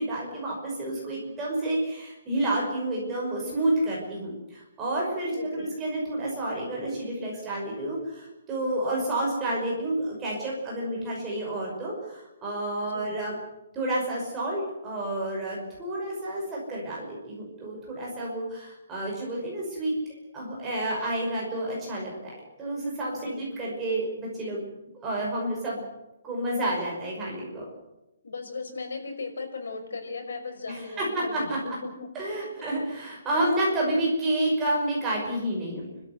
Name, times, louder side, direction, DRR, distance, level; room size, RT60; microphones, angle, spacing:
voice 1, 0.0-13.4 13.7-19.9 20.3-24.6 24.9-25.8 26.2-27.7 30.7-31.8 32.1-35.8, right 1 dB, 10° right, -4 dB, 5.7 m, -30 dB
voice 2, 5.3-5.7 12.9-13.1 23.2-23.4 28.2-32.1, left 4 dB, 90° left, 4 dB, 5.8 m, -37 dB
29.5 x 13.5 x 8.2 m, 0.93 s
hypercardioid pair, 180°, 0 cm